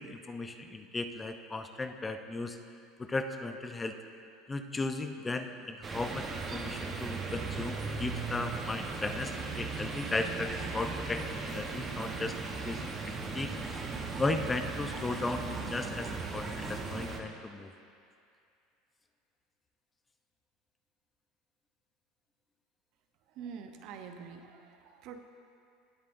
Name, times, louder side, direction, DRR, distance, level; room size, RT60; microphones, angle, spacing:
voice 1, 0.0-2.6 3.1-3.9 4.5-12.4 12.6-13.8 14.2-17.7, left 3 dB, 15° left, 7 dB, 0.6 m, -36 dB
sound 1, 5.8-17.2, right 4 dB, 30° right, 1.0 m, -37 dB
voice 2, 23.3-25.2, right 6 dB, 60° right, 6 dB, 0.8 m, -46 dB
18.0 x 7.3 x 2.6 m, 2.4 s
supercardioid pair, 115°, 0 cm